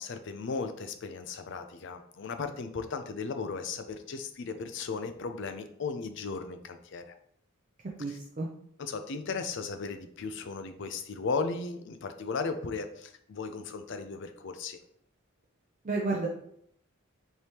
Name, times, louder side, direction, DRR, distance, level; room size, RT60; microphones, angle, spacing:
voice 1, 0.0-7.1 8.1-8.2 8.8-14.8, left 4 dB, 55° left, 8 dB, 0.4 m, -36 dB
voice 2, 8.0-8.5 15.8-16.3, right 3 dB, 35° right, -2 dB, 0.5 m, -31 dB
4.5 x 3.4 x 2.9 m, 0.68 s
head